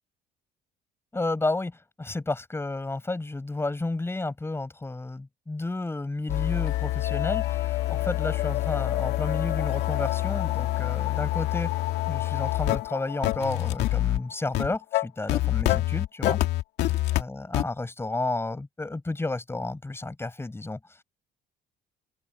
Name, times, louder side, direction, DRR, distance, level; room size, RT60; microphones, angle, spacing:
voice 1, 1.1-11.7 12.1-16.4 17.2-20.8, left 2 dB, 15° left, 7.4 m, -31 dB
sound 1, 6.3-17.2 17.5-17.6, left 16 dB, 85° left, 2.3 m, -26 dB
open air
cardioid pair, 110°, 17 cm